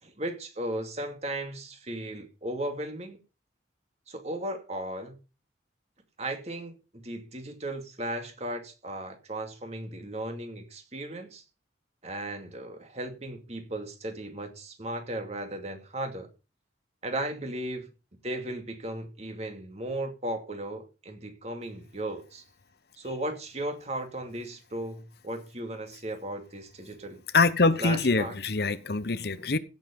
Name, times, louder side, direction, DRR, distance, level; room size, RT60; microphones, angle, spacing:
voice 1, 0.0-3.2 4.1-5.2 6.2-11.4 12.0-16.3 17.0-17.9 18.2-22.4 23.0-27.2 27.8-28.4, right 1 dB, 35° right, 2.5 m, -36 dB
voice 2, 27.3-29.6, left 3 dB, 60° left, 0.9 m, -24 dB
16.0 x 7.4 x 5.3 m
head